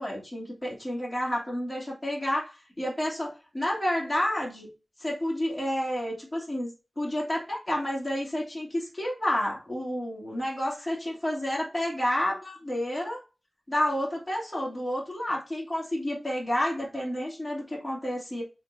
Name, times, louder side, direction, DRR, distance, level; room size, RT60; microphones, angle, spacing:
voice 1, 0.0-4.7 5.0-6.7 7.0-13.2 13.7-18.4, left 1 dB, 15° left, -4 dB, 2.8 m, -30 dB
5.0 x 3.9 x 2.7 m, 0.30 s
wide cardioid pair, 55°, 0 cm